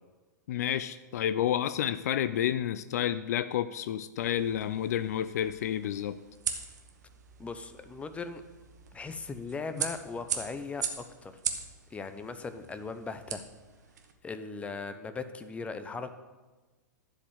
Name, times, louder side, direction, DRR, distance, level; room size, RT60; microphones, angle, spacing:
voice 1, 0.5-6.2, left 10 dB, 60° left, 14 dB, 0.4 m, -30 dB
sound 1, 4.2-14.1, right 7 dB, 65° right, 1.3 m, -40 dB
voice 2, 7.4-8.4 8.9-11.3 11.9-13.4 14.2-16.1, left 4 dB, 15° left, 10 dB, 0.8 m, -38 dB
11.5 x 5.2 x 8.0 m, 1.2 s
figure-of-eight pair, 105°, 10 cm